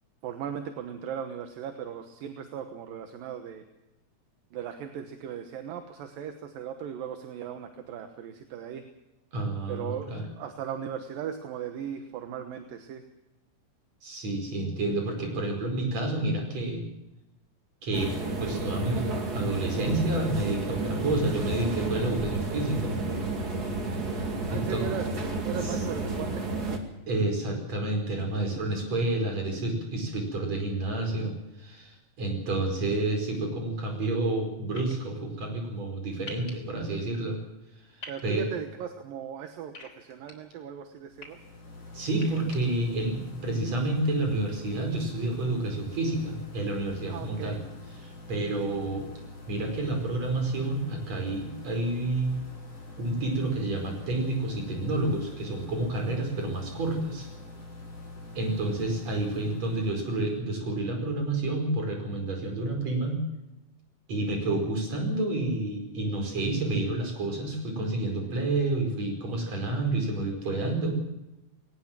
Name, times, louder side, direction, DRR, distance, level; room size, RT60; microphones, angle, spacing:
voice 1, 0.2-3.6 4.5-8.8 9.7-13.1 24.5-25.1 25.4-26.8 38.1-41.4 47.1-47.6, right 9 dB, 75° right, 7 dB, 2.9 m, -38 dB
voice 2, 9.3-10.2 14.0-16.8 17.8-18.1 18.4-19.0 19.3-23.0 24.5-24.8 25.6-25.8 27.1-37.4 38.2-38.5 41.9-47.6 48.0-49.1 49.5-52.3 53.0-57.3 58.4-63.2 64.1-71.0, right 2 dB, 50° right, 3 dB, 6.0 m, -29 dB
sound 1, 17.9-26.8, right 2 dB, 30° right, 2.4 m, -31 dB
sound 2, 34.8-34.9 36.3-36.5 38.0-38.2 39.7-40.3 41.0-41.3 42.1-42.6, left 2 dB, 20° left, 3.4 m, -43 dB
sound 3, 41.0-60.4, left 2 dB, 40° left, 6.0 m, -45 dB
20.5 x 19.0 x 7.5 m, 0.96 s
omnidirectional pair, 4.1 m